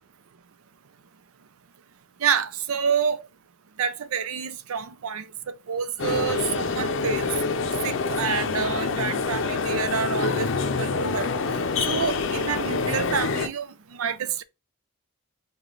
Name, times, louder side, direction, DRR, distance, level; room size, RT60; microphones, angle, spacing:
voice 1, 2.2-3.3 3.8-5.3 5.7-7.3 7.8-10.5 10.8-11.3 11.8-14.4, right 7 dB, 85° right, 0.5 m, -28 dB
sound 1, 6.0-13.5, left 4 dB, 60° left, 0.5 m, -26 dB
4.9 x 2.3 x 3.7 m
head